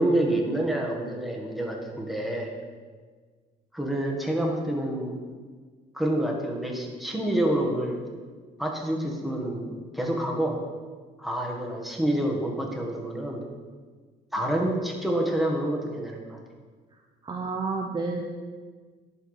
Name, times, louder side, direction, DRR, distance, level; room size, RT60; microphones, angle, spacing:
voice 1, 0.0-2.5 3.7-5.2 5.9-8.0 8.6-10.6 11.2-13.4 14.3-16.4, right 1 dB, ahead, 0 dB, 1.6 m, -27 dB
voice 2, 17.2-18.2, right 4 dB, 25° right, 1 dB, 0.7 m, -30 dB
11.0 x 4.7 x 4.9 m, 1.5 s
cardioid pair, 110°, 17 cm